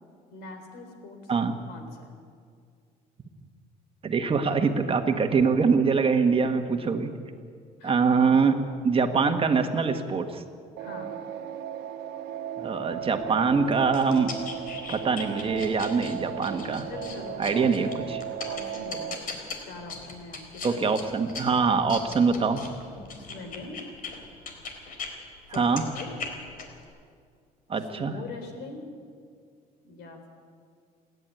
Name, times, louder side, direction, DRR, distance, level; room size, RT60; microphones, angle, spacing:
voice 1, 0.3-1.3 1.7-2.2 7.8-8.1 10.8-11.2 16.9-18.0 18.5-19.2 19.6-20.8 23.2-23.8 25.5-26.2 27.9-28.9 29.8-30.3, left 3 dB, 85° left, 6 dB, 3.9 m, -42 dB
voice 2, 4.0-7.1 7.8-8.6 8.8-10.4 12.6-14.3 14.9-16.9 17.4-18.2 20.6-22.6 25.5-25.8 27.7-28.2, right 5 dB, 35° right, 6 dB, 1.7 m, -24 dB
sound 1, 10.8-19.2, right 10 dB, 75° right, 1.1 m, -36 dB
sound 2, 13.2-25.1 25.5-26.8, left 4 dB, 55° left, 3.9 m, -40 dB
28.0 x 11.0 x 9.4 m, 2.2 s
cardioid pair, 110°, 17 cm